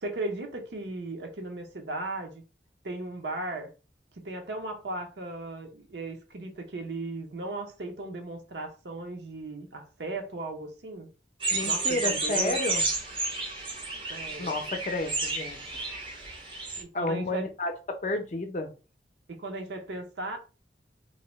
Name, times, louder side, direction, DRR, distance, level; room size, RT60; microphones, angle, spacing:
voice 1, 0.0-2.4 2.8-3.7 4.2-11.1 11.7-12.6 14.1-14.5 16.8-17.4 19.3-20.4, right 2 dB, 75° right, 0.6 m, -36 dB
sound 1, 11.4-16.8, right 3 dB, 30° right, 0.5 m, -31 dB
voice 2, 11.5-12.8 14.4-15.8 16.9-18.7, left 2 dB, 40° left, 0.5 m, -31 dB
2.6 x 2.0 x 3.0 m
head